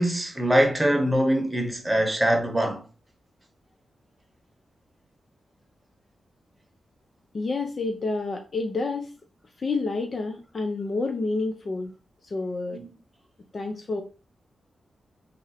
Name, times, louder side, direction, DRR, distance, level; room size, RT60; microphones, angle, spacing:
voice 1, 0.0-2.8 12.7-12.8, equal, 15° right, 0.9 m, -23 dB
voice 2, 7.3-9.1 9.6-11.9 12.2-12.8 13.5-14.0, left 3 dB, 50° left, 0.5 m, -29 dB
2.6 x 2.1 x 4.0 m
cardioid pair, 65°, 0 cm